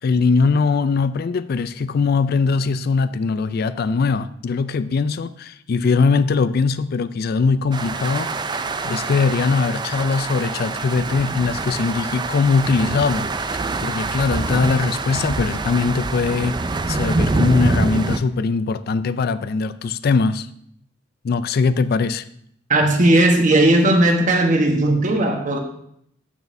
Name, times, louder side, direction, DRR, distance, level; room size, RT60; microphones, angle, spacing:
voice 1, 0.0-20.5 21.2-22.3, left 4 dB, 50° left, 0.4 m, -21 dB
sound 1, 7.7-18.2, right 3 dB, 25° right, 0.3 m, -25 dB
voice 2, 22.7-25.6, right 1 dB, 40° right, 1.2 m, -16 dB
13.5 x 6.1 x 2.6 m
head